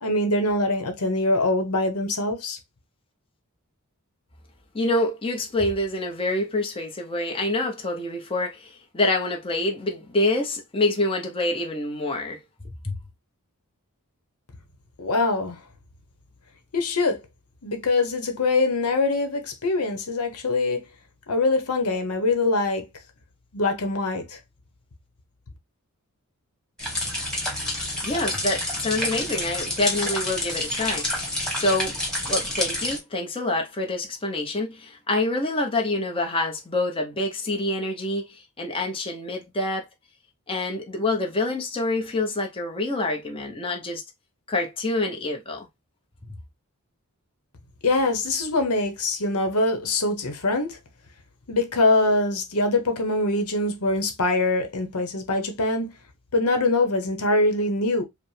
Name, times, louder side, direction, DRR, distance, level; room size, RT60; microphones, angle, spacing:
voice 1, 0.0-2.6 15.0-15.6 16.7-17.2 17.6-20.8 21.3-22.9 23.5-24.4 47.8-50.8 51.5-55.9 56.3-58.0, left 2 dB, 80° left, 0.9 m, -23 dB
voice 2, 4.7-12.4 12.6-13.0 28.0-31.1 31.6-32.0 32.3-39.9 40.5-44.0 44.5-45.7, left 2 dB, 25° left, 0.8 m, -26 dB
sound 1, 26.8-33.0, left 1 dB, 5° left, 1.5 m, -28 dB
5.0 x 2.1 x 3.2 m
head